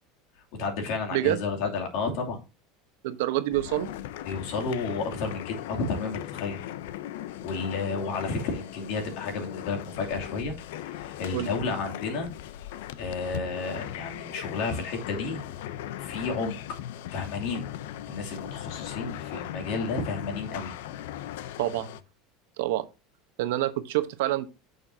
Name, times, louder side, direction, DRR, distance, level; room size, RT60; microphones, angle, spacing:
voice 1, 0.6-2.4 4.3-6.6 7.4-12.3 13.0-15.4 16.0-16.6 17.1-17.7 18.1-20.7, left 4 dB, 65° left, 2.7 m, -32 dB
voice 2, 3.0-3.9 11.3-11.5 21.6-21.9 22.6-22.8 23.4-24.5, right 15 dB, 80° right, 0.9 m, -27 dB
sound 1, 3.5-22.0, left 12 dB, 85° left, 0.6 m, -38 dB
8.9 x 6.6 x 2.7 m
supercardioid pair, 145°, 0 cm